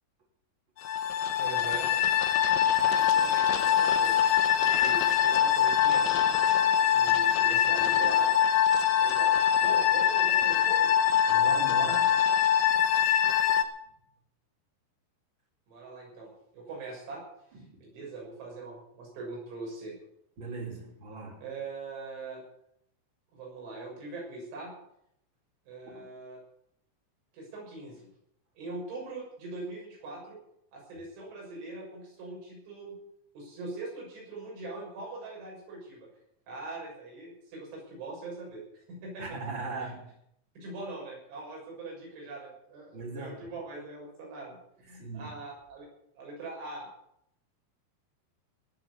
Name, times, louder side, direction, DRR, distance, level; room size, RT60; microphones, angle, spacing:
sound 1, 0.8-13.6, left 9 dB, 70° left, 2.1 m, -24 dB
voice 1, 1.4-1.9 2.8-4.3 4.6-6.3 6.9-8.3 9.0-9.4 9.6-10.9 15.7-17.2 17.5-20.0 21.4-22.4 23.3-24.7 25.7-26.4 27.3-28.1 28.6-30.4 30.7-33.0 33.4-36.1 36.5-38.6 38.9-39.3 39.8-39.9 40.6-45.9 46.2-46.9, right 3 dB, 90° right, -2 dB, 9.0 m, -42 dB
voice 2, 11.3-12.2 17.5-17.8 20.4-21.4 25.9-26.0 39.2-40.1 42.9-43.5 44.9-45.3, right 3 dB, 30° right, 1 dB, 3.1 m, -39 dB
19.0 x 7.8 x 8.4 m, 0.74 s
omnidirectional pair, 5.2 m